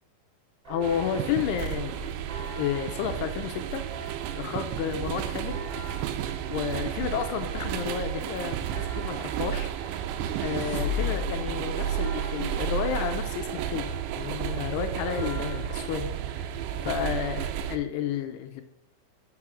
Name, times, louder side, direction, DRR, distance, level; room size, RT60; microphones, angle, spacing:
Church bell, 0.6-17.6, right 2 dB, 10° right, 2.2 m, -45 dB
voice 1, 0.7-2.1 2.6-3.8 4.4-5.6 6.5-9.9 10.4-13.9 14.2-18.6, left 9 dB, 80° left, 7 dB, 2.5 m, -31 dB
sound 1, 0.8-17.8, right 10 dB, 90° right, 2.8 m, -32 dB
sound 2, 9.9-11.7, left 10 dB, 50° left, 1.8 m, -33 dB
6.4 x 6.0 x 6.1 m, 0.82 s
omnidirectional pair, 5.1 m